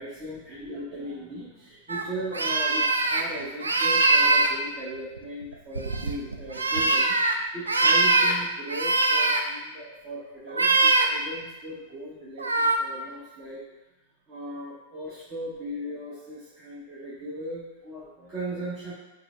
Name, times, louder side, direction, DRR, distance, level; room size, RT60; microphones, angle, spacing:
voice 1, 0.0-13.8 14.3-18.9, right 1 dB, 30° right, -8 dB, 0.9 m, -38 dB
sound 1, 1.9-2.0 2.3-3.2 3.6-4.5 5.2-7.3 7.7-8.3 8.7-9.4 10.5-11.1 12.4-12.8, right 3 dB, 90° right, 0.3 m, -22 dB
4.7 x 2.0 x 3.6 m, 1.0 s
hypercardioid pair, 100°, 0 cm